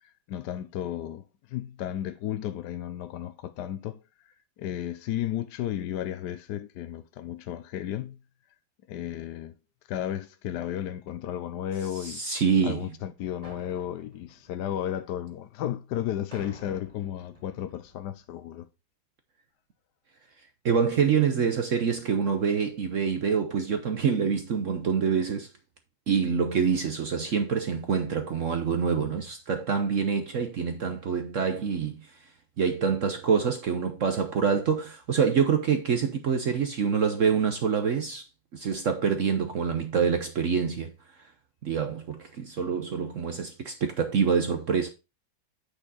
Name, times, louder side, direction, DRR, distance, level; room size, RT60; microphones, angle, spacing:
voice 1, 0.0-8.2 8.9-9.5 9.9-12.2 12.6-18.7, left 11 dB, 70° left, 1.1 m, -34 dB
voice 2, 12.0-12.8 20.6-25.5 26.1-32.1 32.6-38.2 38.5-40.9 41.6-44.9, right 6 dB, 60° right, 0.8 m, -26 dB
sound 1, 13.4-15.4 16.3-18.2, equal, 15° right, 2.3 m, -51 dB
8.7 x 5.0 x 4.0 m
omnidirectional pair, 2.1 m